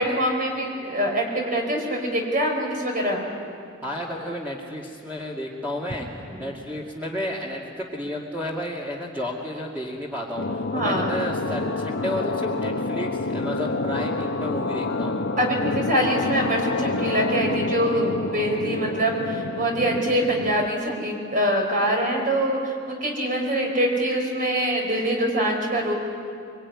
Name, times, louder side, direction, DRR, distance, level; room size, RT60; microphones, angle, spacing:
voice 1, 0.0-3.3 6.2-6.5 10.7-11.2 15.4-25.9, right 1 dB, 45° right, 1 dB, 5.1 m, -24 dB
voice 2, 3.8-6.1 6.4-7.6 7.9-10.4 10.7-15.3, left 1 dB, 10° right, -4 dB, 2.4 m, -31 dB
sound 1, 10.4-20.7, left 3 dB, 80° left, 0.9 m, -28 dB
25.0 x 24.0 x 9.8 m, 2.3 s
head